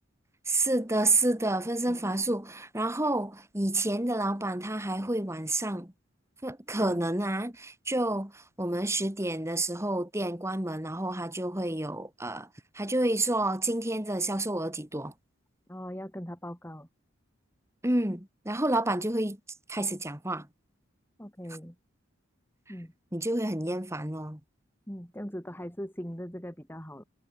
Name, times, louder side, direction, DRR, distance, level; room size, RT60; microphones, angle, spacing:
voice 1, 0.5-5.9 6.4-12.5 12.7-15.1 17.8-19.4 19.7-20.5 23.1-24.4, right 2 dB, 15° right, 2.7 m, -29 dB
voice 2, 1.8-2.2 6.7-7.0 15.7-16.9 21.2-21.7 22.7-22.9 24.9-27.0, equal, 10° left, 4.8 m, -40 dB
head